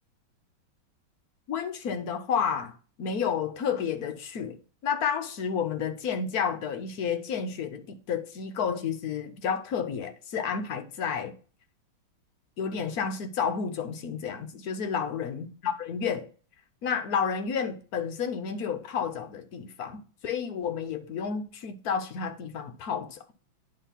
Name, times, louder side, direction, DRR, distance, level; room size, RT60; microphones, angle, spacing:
voice 1, 1.5-4.6 4.8-11.3 12.6-16.3 16.8-23.2, left 7 dB, 60° left, 1.1 m, -31 dB
10.0 x 3.7 x 5.6 m
omnidirectional pair, 2.2 m